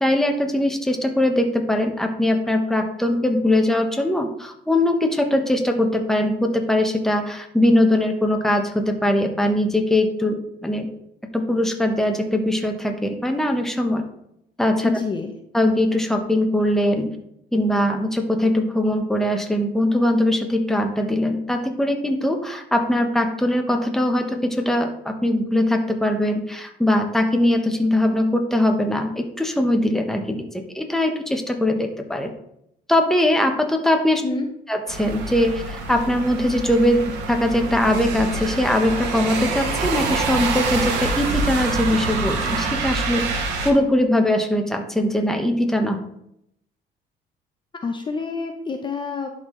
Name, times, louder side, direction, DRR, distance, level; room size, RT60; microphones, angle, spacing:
voice 1, 0.0-10.9 11.3-14.1 14.6-14.9 15.5-17.1 17.5-30.5 30.7-32.3 32.9-34.2 34.7-46.0, left 1 dB, ahead, 4 dB, 0.9 m, -21 dB
voice 2, 14.8-15.3 34.2-34.4 47.8-49.3, left 4 dB, 30° left, 4 dB, 0.7 m, -27 dB
sound 1, 34.9-43.7, right 3 dB, 90° right, 1.2 m, -26 dB
11.0 x 4.0 x 3.1 m, 0.77 s
cardioid pair, 110°, 17 cm